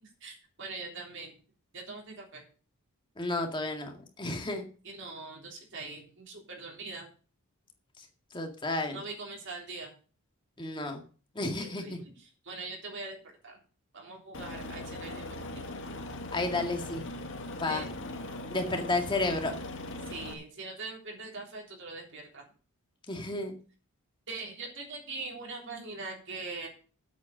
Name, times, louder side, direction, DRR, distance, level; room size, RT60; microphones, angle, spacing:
voice 1, 0.2-1.4 1.7-2.4 4.8-7.1 8.9-9.9 11.6-13.6 13.9-15.6 17.7-17.9 20.1-22.5 24.3-26.7, right 3 dB, 55° right, 0 dB, 3.6 m, -42 dB
voice 2, 3.2-4.7 8.3-9.0 10.6-11.0 11.4-12.0 16.3-17.0 17.6-17.8 18.5-19.6 23.1-23.6, left 2 dB, 20° left, 4 dB, 2.1 m, -32 dB
Aircraft, 14.3-20.3, left 2 dB, 60° left, 1.9 m, -40 dB
8.4 x 8.3 x 6.6 m, 0.38 s
head